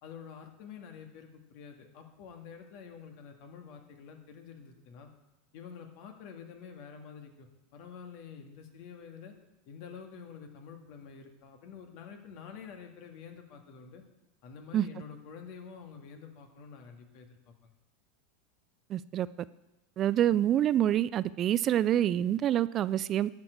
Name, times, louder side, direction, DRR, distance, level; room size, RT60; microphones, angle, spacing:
voice 1, 0.0-5.1 5.5-9.3 9.7-14.0 14.4-17.7, left 6 dB, 60° left, 4 dB, 1.8 m, -48 dB
voice 2, 18.9-19.3 20.0-23.3, right 11 dB, 40° right, 17 dB, 0.3 m, -26 dB
11.5 x 5.2 x 7.9 m, 1.0 s
hypercardioid pair, 100°, 0 cm